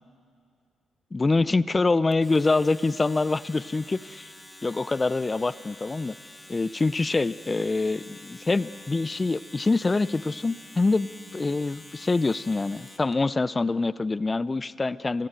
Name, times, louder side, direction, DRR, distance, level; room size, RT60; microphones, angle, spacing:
voice 1, 1.1-4.3 4.6-6.2 6.5-11.1 11.3-15.3, left 3 dB, 30° left, 18 dB, 0.6 m, -25 dB
Domestic sounds home sounds, 2.1-13.1, left 1 dB, 15° left, 3.2 m, -47 dB
28.5 x 19.0 x 9.0 m, 2.3 s
supercardioid pair, 50°, 0 cm